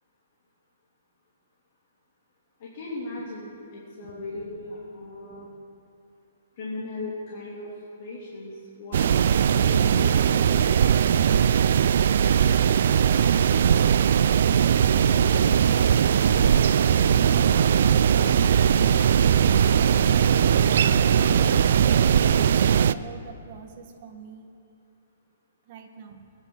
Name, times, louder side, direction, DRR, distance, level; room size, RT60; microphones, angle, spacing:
voice 1, 2.6-5.5 6.6-7.7 8.0-9.0 9.5-10.8, left 2 dB, 45° left, -6 dB, 3.0 m, -37 dB
sound 1, 8.9-22.9, right 8 dB, 60° right, 0.4 m, -20 dB
sound 2, 15.0-22.6, left 5 dB, 85° left, 0.4 m, -38 dB
voice 2, 22.6-24.5 25.6-26.2, right 5 dB, 35° right, 3 dB, 1.6 m, -44 dB
25.5 x 10.5 x 4.0 m, 2.5 s
hypercardioid pair, 160°, 0 cm